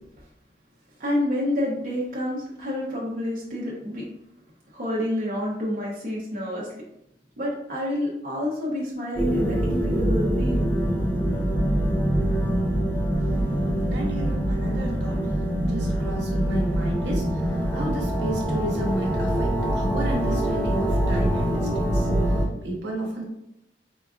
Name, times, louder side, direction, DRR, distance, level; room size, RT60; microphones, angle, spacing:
voice 1, 1.0-4.0 4.7-6.8 7.4-10.7, left 1 dB, 45° right, -5 dB, 0.6 m, -28 dB
sound 1, 9.2-22.5, right 1 dB, 10° left, 0.4 m, -24 dB
voice 2, 13.9-23.2, right 1 dB, 75° right, -2 dB, 0.8 m, -32 dB
4.5 x 2.4 x 2.3 m, 0.80 s
head